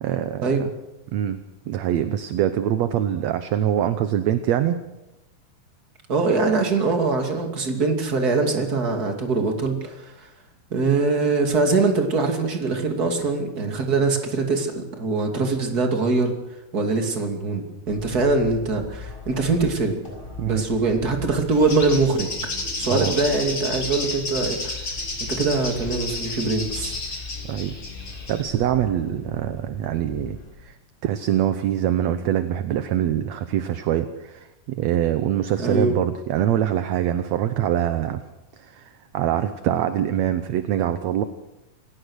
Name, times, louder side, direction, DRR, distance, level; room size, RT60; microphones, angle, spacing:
voice 1, 0.0-0.7 1.1-4.8 20.4-20.6 22.9-23.2 27.5-27.8 28.3-30.8 31.0-38.2 38.6-41.2, right 11 dB, 70° right, 10 dB, 1.8 m, -24 dB
voice 2, 6.1-10.3 10.7-16.3 16.7-20.0 20.5-22.3 22.8-24.8 25.3-27.0 35.6-36.0, right 3 dB, 30° right, 4 dB, 2.8 m, -23 dB
sound 1, 17.9-30.5, left 4 dB, 15° left, 6.1 m, -39 dB
Bird, 21.5-28.4, left 2 dB, 35° left, 4.1 m, -32 dB
27.5 x 17.0 x 6.4 m, 0.93 s
omnidirectional pair, 3.9 m